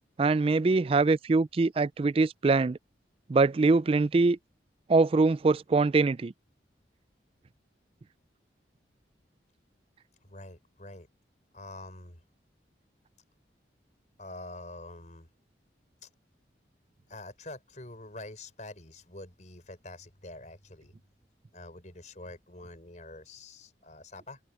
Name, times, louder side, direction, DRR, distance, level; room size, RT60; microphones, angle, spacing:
voice 1, 0.2-2.8 3.3-4.4 4.9-6.3, right 3 dB, 30° right, 0.3 m, -23 dB
voice 2, 10.2-11.1 11.5-12.2 14.2-15.3 16.0-16.1 17.1-20.9 21.5-24.4, left 2 dB, 40° left, 5.0 m, -46 dB
open air
head